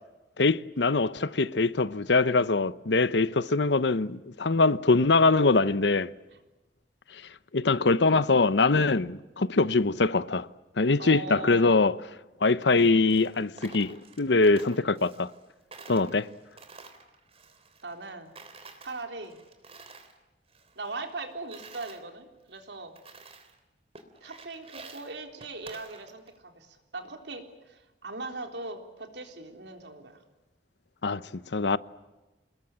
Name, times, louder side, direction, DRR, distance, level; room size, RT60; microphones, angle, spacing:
voice 1, 0.4-6.1 7.1-10.5 10.8-11.9 12.4-15.3 15.9-16.3 31.0-31.8, left 3 dB, 80° left, 0.9 m, -23 dB
voice 2, 11.0-11.7 17.8-18.3 18.8-19.4 20.8-22.9 24.2-30.2, right 3 dB, 75° right, 3.7 m, -40 dB
Coin (dropping), 12.6-15.4 15.7-18.1 18.4-20.2 20.5-22.0 22.5-22.6 23.0-23.6 23.9-26.4, right 4 dB, 35° right, 3.2 m, -50 dB
28.0 x 20.5 x 8.9 m
head